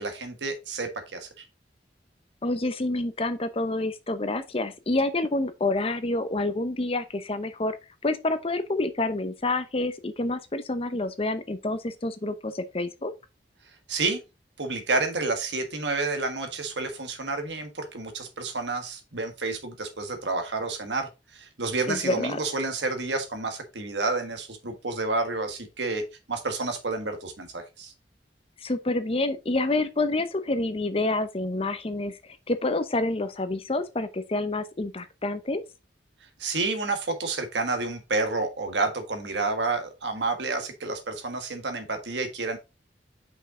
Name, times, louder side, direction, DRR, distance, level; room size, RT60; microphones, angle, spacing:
voice 1, 0.0-1.4 13.9-14.2 14.6-26.0 26.3-27.9 36.4-42.6, right 3 dB, 85° right, 1.5 m, -30 dB
voice 2, 2.4-7.8 8.0-13.1 21.9-22.4 28.6-35.6, left 2 dB, 35° left, 0.7 m, -28 dB
5.7 x 5.5 x 3.7 m
head